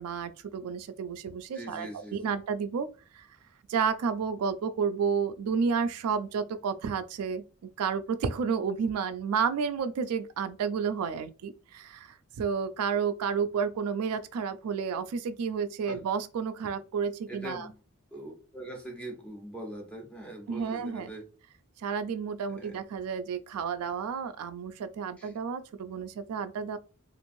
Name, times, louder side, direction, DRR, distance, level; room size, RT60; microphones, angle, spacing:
voice 1, 0.0-2.9 3.1-3.3 3.7-7.4 7.8-17.7 20.5-21.1 21.8-26.8, right 6 dB, 75° right, 0.3 m, -31 dB
voice 2, 1.5-2.2 15.9-16.0 17.3-17.8 18.1-21.2 22.5-22.8 25.2-25.3, right 1 dB, 5° left, 0.7 m, -42 dB
3.0 x 2.5 x 2.6 m
head